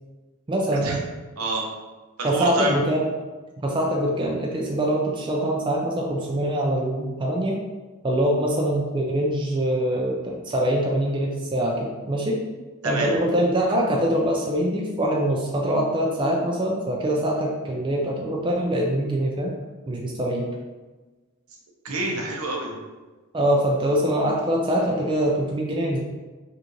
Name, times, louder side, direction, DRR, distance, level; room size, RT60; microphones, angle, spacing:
voice 1, 0.5-1.0 2.2-3.1 3.6-7.6 8.0-12.4 12.8-19.5 19.9-20.5 23.3-26.0, right 1 dB, 20° right, -1 dB, 0.4 m, -24 dB
voice 2, 1.4-1.7 2.2-2.8 12.8-13.1 21.8-22.7, right 2 dB, 80° right, -1 dB, 0.8 m, -27 dB
4.9 x 2.5 x 3.1 m, 1.2 s
head